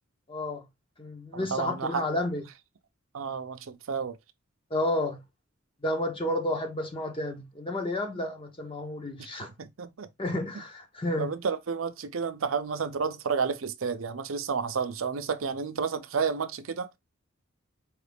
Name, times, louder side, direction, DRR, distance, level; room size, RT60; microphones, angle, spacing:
voice 1, 0.3-0.6 1.0-2.4 4.7-5.2 5.8-9.5 10.2-11.3, left 1 dB, 25° left, 0.9 m, -31 dB
voice 2, 1.3-2.1 3.1-4.2 9.6-10.1 11.2-17.0, right 5 dB, 80° right, 0.6 m, -31 dB
4.8 x 2.4 x 3.4 m
head